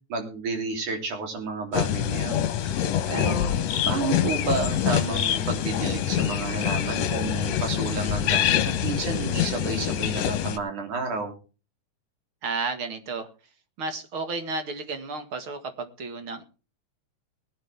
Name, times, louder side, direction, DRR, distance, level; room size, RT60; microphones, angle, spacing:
voice 1, 0.1-2.7 3.1-3.5 3.9-11.3, right 4 dB, 75° right, 3 dB, 4.8 m, -31 dB
sound 1, 1.7-10.6, left 10 dB, 65° left, 2.0 m, -25 dB
voice 2, 12.4-13.3 13.8-16.4, right 3 dB, 45° right, 7 dB, 2.4 m, -32 dB
20.5 x 9.7 x 3.5 m, 0.34 s
omnidirectional pair, 3.5 m